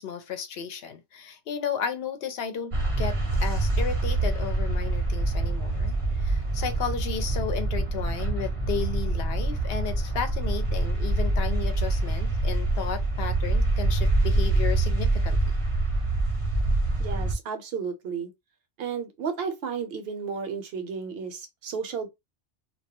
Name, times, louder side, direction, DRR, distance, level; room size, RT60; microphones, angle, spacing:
voice 1, 0.0-15.4, left 7 dB, 65° left, 0.7 m, -34 dB
sound 1, 2.7-17.3, right 2 dB, 35° right, 0.6 m, -25 dB
voice 2, 17.0-18.3 18.8-22.1, right 6 dB, 65° right, 0.8 m, -33 dB
2.2 x 2.1 x 2.8 m
omnidirectional pair, 1.2 m